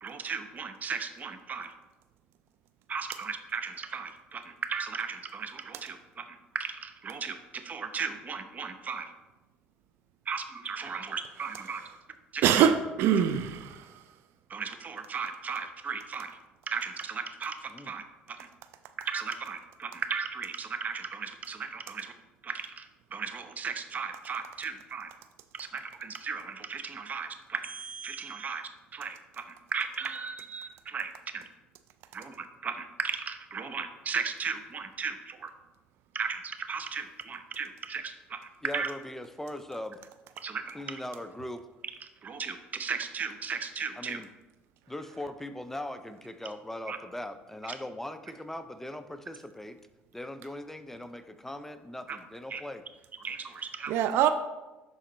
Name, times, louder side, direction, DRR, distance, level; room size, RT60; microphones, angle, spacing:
voice 1, 0.0-1.7 2.9-9.1 10.3-11.8 12.3-12.5 14.5-16.4 16.7-17.6 17.8-18.5 19.0-22.1 22.4-22.9 23.1-25.1 25.5-31.5 32.1-35.5 36.1-38.9 40.4-41.0 42.2-44.2 46.9-47.0 52.1-52.2 52.5-52.6 53.2-53.9, right 5 dB, 40° right, 8 dB, 0.8 m, -36 dB
voice 2, 12.4-13.9 53.9-54.3, right 9 dB, 70° right, 10 dB, 0.4 m, -24 dB
voice 3, 38.6-40.0 40.7-41.7 44.0-44.3 44.9-49.8 50.1-52.8, left 1 dB, 10° left, 10 dB, 0.5 m, -40 dB
11.0 x 4.1 x 3.0 m, 1.1 s
supercardioid pair, 75°, 4 cm